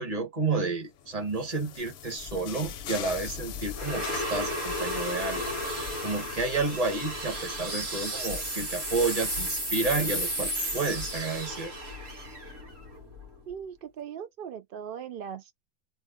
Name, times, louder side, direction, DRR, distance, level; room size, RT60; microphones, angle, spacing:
voice 1, 0.0-5.4 5.8-11.7, right 3 dB, 30° right, 1.1 m, -31 dB
sound 1, 1.0-8.5, left 10 dB, 65° left, 0.7 m, -42 dB
sound 2, 2.3-13.5, equal, 60° right, 2.7 m, -34 dB
voice 2, 13.5-15.5, right 8 dB, 75° right, 0.5 m, -39 dB
4.4 x 2.1 x 3.6 m
omnidirectional pair, 1.5 m